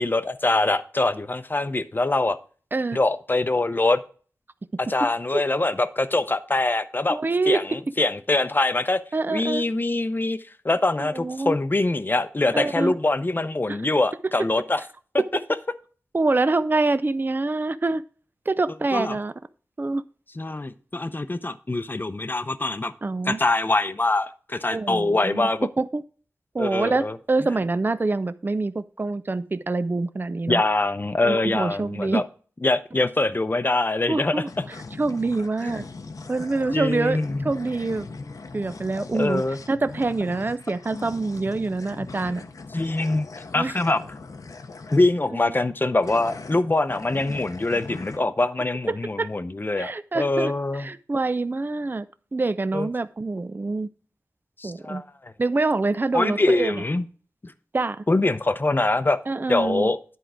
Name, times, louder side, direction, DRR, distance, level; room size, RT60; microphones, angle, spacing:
voice 1, 0.0-2.4 2.9-4.0 4.8-7.2 7.5-9.0 9.3-10.4 10.6-14.8 18.9-19.2 20.4-22.9 23.3-25.7 26.6-27.2 30.5-32.2 32.6-34.4 35.6-35.8 36.7-37.4 38.2-38.4 39.0-39.6 42.7-43.3 43.5-44.0 44.9-50.9 52.7-52.9 54.6-55.3 56.1-57.0 58.1-59.2 59.5-60.0, left 2 dB, 35° left, 11 dB, 0.6 m, -24 dB
voice 2, 7.1-7.6 9.1-9.6 11.1-11.6 12.5-12.9 13.7-13.8 16.1-18.0 18.5-19.3 19.8-20.0 23.0-23.4 24.7-25.5 25.8-26.0 26.5-30.6 31.2-32.2 34.1-35.8 36.3-38.1 38.5-42.4 43.5-43.7 45.3-45.5 48.9-49.3 49.8-50.5 50.8-52.1 52.3-53.9 54.6-55.0 55.4-56.8 57.7-58.0 59.3-59.9, right 3 dB, 35° right, 13 dB, 0.4 m, -25 dB
sound 1, 34.5-45.3 46.0-48.2, left 3 dB, 75° left, 0.7 m, -40 dB
10.5 x 4.5 x 4.9 m, 0.41 s
wide cardioid pair, 75°, 6 cm